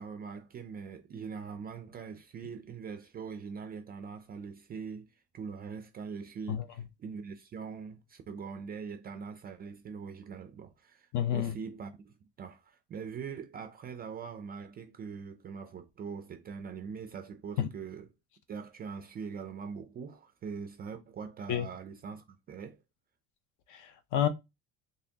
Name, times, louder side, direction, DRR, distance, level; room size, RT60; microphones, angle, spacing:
voice 1, 0.0-5.1 5.3-18.1 18.5-22.8, right 6 dB, 30° right, 0.4 m, -42 dB
voice 2, 11.1-11.5 17.6-17.7 21.5-21.7 23.7-24.3, left 10 dB, 60° left, 0.7 m, -29 dB
4.2 x 3.2 x 2.8 m
cardioid pair, 145°, 34 cm